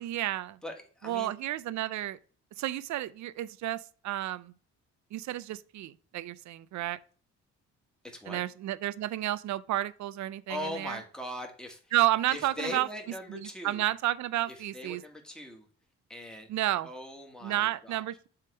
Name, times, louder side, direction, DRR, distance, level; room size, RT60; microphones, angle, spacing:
voice 1, 0.0-0.6 1.0-2.2 2.6-4.5 5.1-7.0 8.3-11.0 11.9-12.9 13.3-15.0 16.5-16.9 17.4-18.3, right 14 dB, 70° right, 0.5 m, -31 dB
voice 2, 0.6-1.3 8.0-8.4 10.5-11.9 12.3-13.9 14.5-15.7 16.1-16.5 16.8-18.0, left 1 dB, ahead, 1.7 m, -41 dB
7.7 x 3.6 x 4.5 m
cardioid pair, 90°, 30 cm